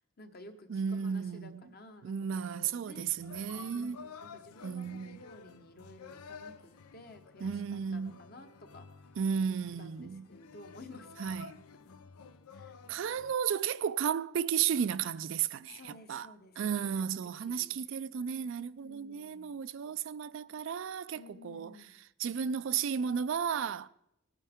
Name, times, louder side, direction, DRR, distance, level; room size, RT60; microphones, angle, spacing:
voice 1, 0.2-3.1 3.7-8.9 9.3-11.3 12.5-12.8 15.7-17.8 18.8-19.5 21.1-21.9, left 2 dB, 45° left, 1.1 m, -53 dB
voice 2, 0.7-1.6 2.0-4.0 4.6-5.2 7.4-8.1 9.2-10.3 11.2-11.6 12.9-16.3 16.6-21.7 22.2-23.9, right 7 dB, 60° right, 0.3 m, -34 dB
sound 1, 3.2-13.3, left 5 dB, 90° left, 0.6 m, -52 dB
19.0 x 9.8 x 3.6 m
head